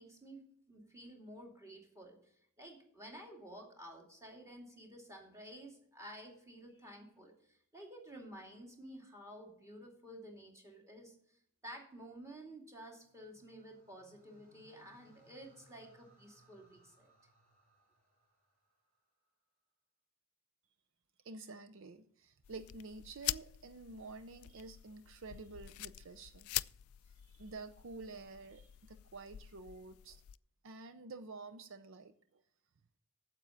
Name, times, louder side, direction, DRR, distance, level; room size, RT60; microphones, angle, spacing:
voice 1, 0.0-17.1, right 1 dB, 15° right, 1 dB, 2.5 m, -52 dB
sound 1, 13.0-19.3, right 1 dB, 40° right, 4.2 m, -68 dB
voice 2, 21.2-26.6 27.1-30.2 30.6-32.4, right 3 dB, 65° right, 10 dB, 0.6 m, -50 dB
sound 2, 22.4-30.4, left 16 dB, 75° left, 0.3 m, -45 dB
9.0 x 7.7 x 7.0 m, 0.67 s
head